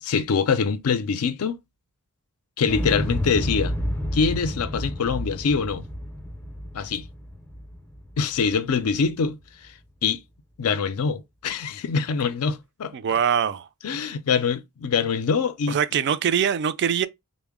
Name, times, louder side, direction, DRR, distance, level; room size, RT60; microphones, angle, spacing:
voice 1, 0.0-1.6 2.6-3.8 4.1-5.8 6.7-7.1 8.2-9.7 10.0-10.2 10.6-12.9 13.8-15.8, left 5 dB, 70° left, 0.4 m, -24 dB
Explosion, 2.7-8.7 9.0-9.1, equal, 10° left, 0.5 m, -30 dB
voice 2, 12.9-13.7 15.7-17.1, right 8 dB, 50° right, 0.3 m, -23 dB
3.8 x 2.0 x 3.5 m
head